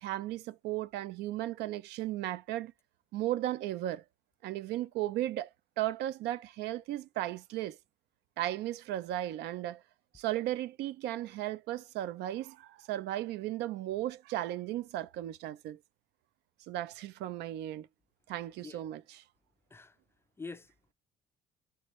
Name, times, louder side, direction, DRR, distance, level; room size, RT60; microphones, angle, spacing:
voice 1, 0.0-2.7 3.1-4.0 4.4-5.5 5.8-7.8 8.4-9.8 10.1-15.8 16.7-17.9 18.3-19.0, right 14 dB, 80° right, 0.4 m, -35 dB
voice 2, 20.4-20.9, left 4 dB, 15° left, 0.3 m, -46 dB
4.5 x 3.3 x 3.0 m
cardioid pair, 110°, 17 cm